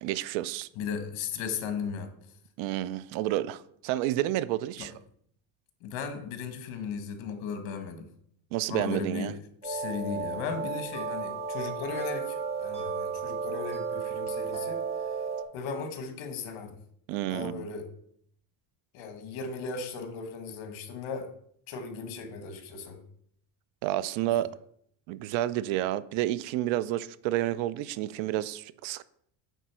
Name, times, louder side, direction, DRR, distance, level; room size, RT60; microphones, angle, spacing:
voice 1, 0.0-0.7 2.6-4.9 8.5-9.4 17.1-17.6 23.8-24.5 25.1-29.0, right 14 dB, 70° right, 0.6 m, -30 dB
voice 2, 0.8-2.1 4.8-4.9 5.8-8.1 8.7-14.8 15.5-16.8 17.3-17.9 18.9-21.3 21.7-23.0, left 5 dB, 70° left, 1.6 m, -36 dB
sound 1, 9.6-15.4, right 5 dB, 15° right, 1.5 m, -33 dB
9.1 x 4.0 x 6.1 m
cardioid pair, 150°, 48 cm